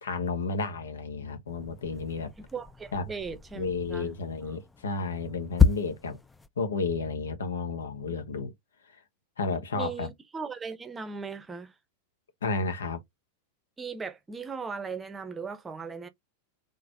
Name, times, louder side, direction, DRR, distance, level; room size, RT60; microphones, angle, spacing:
voice 1, 0.0-2.3 2.9-3.1 3.5-6.2 6.6-8.5 9.4-10.1 12.4-13.0, left 4 dB, 65° left, 1.0 m, -32 dB
sound 1, 1.5-6.5, left 6 dB, 10° left, 0.4 m, -30 dB
voice 2, 2.4-4.1 9.7-11.7 13.8-16.1, right 5 dB, 15° right, 0.8 m, -38 dB
4.0 x 3.2 x 2.7 m
figure-of-eight pair, 90°, 0 cm